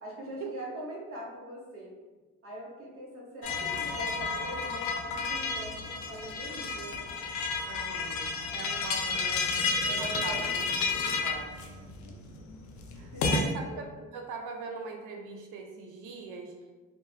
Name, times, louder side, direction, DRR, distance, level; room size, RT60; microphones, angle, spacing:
voice 1, 0.0-1.9 2.4-7.1 9.8-10.5 12.0-12.1 13.1-13.9, right 1 dB, 50° right, -3 dB, 0.8 m, -42 dB
sound 1, 3.4-13.4, left 4 dB, 70° left, 0.5 m, -31 dB
voice 2, 7.6-9.6 9.9-11.5 13.0-13.9 14.1-16.5, right 4 dB, 85° right, 2 dB, 0.5 m, -41 dB
2.3 x 2.1 x 3.2 m, 1.2 s
cardioid pair, 90°, 30 cm